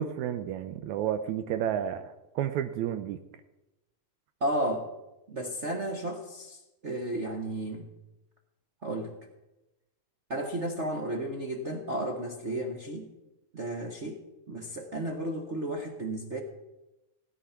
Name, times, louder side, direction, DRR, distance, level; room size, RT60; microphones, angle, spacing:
voice 1, 0.0-2.0 2.4-3.2, right 10 dB, 80° right, 9 dB, 2.0 m, -31 dB
voice 2, 4.4-4.9 5.3-7.9 8.8-9.1 10.3-13.1 13.5-14.2 14.5-16.4, right 1 dB, 55° right, 2 dB, 0.7 m, -33 dB
17.0 x 9.9 x 5.8 m, 0.96 s
omnidirectional pair, 3.4 m